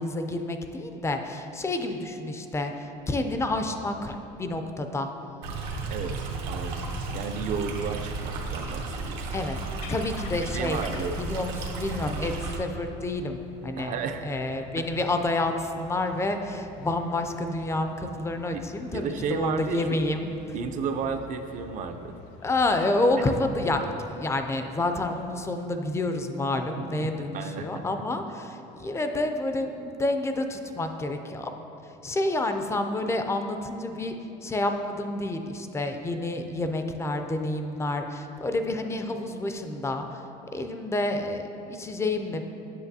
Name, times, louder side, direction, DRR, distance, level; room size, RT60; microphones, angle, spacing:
voice 1, 0.0-5.1 9.3-9.6 9.9-13.9 14.2-20.3 22.4-31.5 31.8-34.1 34.4-40.2 40.5-42.4, left 2 dB, 15° left, 6 dB, 0.4 m, -29 dB
Stream, 5.4-12.6, right 3 dB, 85° right, 0.9 m, -34 dB
voice 2, 5.9-9.3 10.5-11.2 13.8-14.3 14.8-14.9 18.5-20.0 20.5-22.1 27.3-27.8, right 5 dB, 45° right, 7 dB, 0.4 m, -33 dB
sound 1, 9.3-25.3, left 6 dB, 85° left, 0.4 m, -48 dB
8.1 x 5.9 x 2.7 m, 3.0 s
cardioid pair, 120°, 18 cm